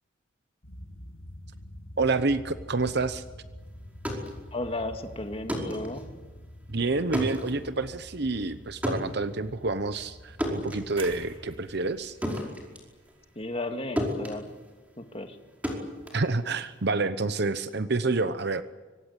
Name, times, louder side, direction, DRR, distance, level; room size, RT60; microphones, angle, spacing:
sound 1, 0.6-11.0, equal, 85° left, 7.1 m, -46 dB
voice 1, 2.0-3.2 6.7-12.2 16.1-18.6, right 3 dB, 55° right, 12 dB, 0.9 m, -28 dB
sound 2, 3.8-13.7 14.0-16.9, equal, 5° right, 5.1 m, -35 dB
voice 2, 4.5-6.1 13.4-14.5 15.0-15.4, left 2 dB, 30° left, 6 dB, 2.2 m, -34 dB
sound 3, 11.0-15.0 15.3-15.6, right 3 dB, 30° right, 3.7 m, -49 dB
25.5 x 24.5 x 8.3 m, 1.3 s
head